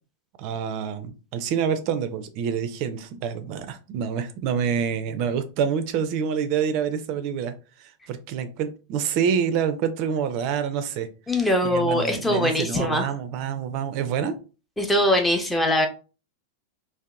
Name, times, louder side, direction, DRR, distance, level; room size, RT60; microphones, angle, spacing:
voice 1, 0.4-11.1 11.4-14.4, right 7 dB, 45° right, 10 dB, 0.4 m, -27 dB
voice 2, 11.3-13.1 14.8-15.9, left 1 dB, 5° left, 3 dB, 0.5 m, -22 dB
2.7 x 2.1 x 2.3 m, 0.33 s
figure-of-eight pair, 90°, 0 cm